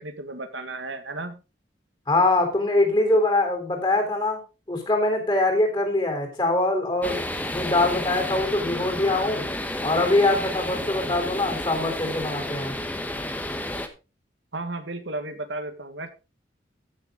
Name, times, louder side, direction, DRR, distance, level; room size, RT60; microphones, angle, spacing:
voice 1, 0.0-1.4 14.5-16.1, right 2 dB, 80° right, 8 dB, 1.6 m, -34 dB
voice 2, 2.1-4.4 4.7-7.2 7.5-9.5 9.8-12.7, left 2 dB, 25° left, 4 dB, 3.7 m, -23 dB
sound 1, 7.0-13.9, left 1 dB, 10° left, 1.1 m, -31 dB
15.0 x 7.0 x 3.8 m, 0.31 s
head